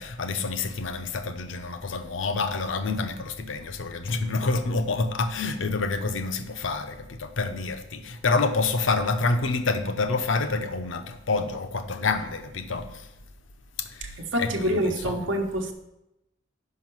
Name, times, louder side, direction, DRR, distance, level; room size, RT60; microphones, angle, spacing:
voice 1, 0.0-13.1 13.8-15.2, left 3 dB, 75° left, 0.7 m, -28 dB
voice 2, 14.0-15.7, equal, 70° right, 1.0 m, -27 dB
5.7 x 5.5 x 6.0 m
head